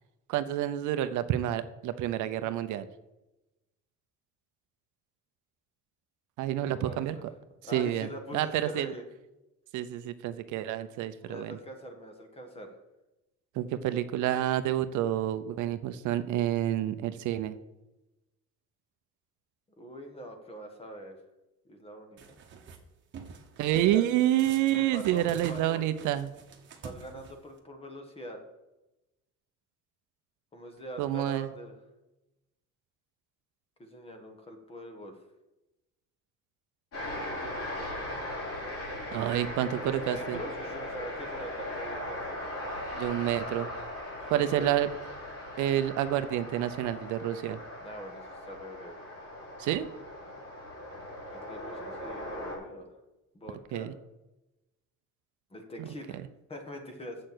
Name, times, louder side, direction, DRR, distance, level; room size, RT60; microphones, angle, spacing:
voice 1, 0.3-2.9 6.4-7.2 7.7-8.9 9.7-11.6 13.6-17.5 23.6-26.3 31.0-31.5 39.1-40.4 42.9-43.7 44.3-44.9 45.6-47.6 49.6-49.9 53.7-53.9 55.8-55.9, right 12 dB, 70° right, 12 dB, 0.7 m, -29 dB
voice 2, 6.7-7.2 7.6-9.0 11.2-12.7 19.8-21.2 21.6-22.2 23.7-24.0 24.7-25.8 26.8-28.4 30.5-31.7 33.8-35.2 39.8-42.4 44.2-44.8 47.8-49.0 51.3-53.0 53.3-53.9 55.5-56.2 56.5-57.2, equal, 20° left, 4 dB, 1.4 m, -43 dB
sound 1, 22.2-22.8 23.1-24.0 24.4-27.6, right 5 dB, 40° right, 1.2 m, -47 dB
sound 2, 36.9-52.6, left 1 dB, 45° left, 4.4 m, -39 dB
7.5 x 6.6 x 7.8 m, 0.99 s
cardioid pair, 170°, 31 cm